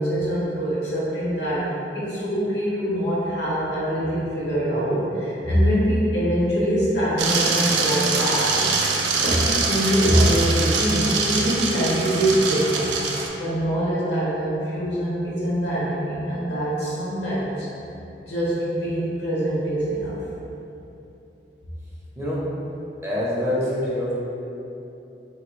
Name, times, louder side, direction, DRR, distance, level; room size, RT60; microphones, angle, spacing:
voice 1, 0.0-1.7 1.9-8.6 9.2-12.9 13.4-17.7 18.2-20.2, equal, 75° left, -7 dB, 1.0 m, -23 dB
sound 1, 7.2-13.3, right 4 dB, 75° right, 0.3 m, -24 dB
voice 2, 23.0-24.1, left 1 dB, 15° right, -8 dB, 0.5 m, -25 dB
3.2 x 2.2 x 3.0 m, 2.9 s
head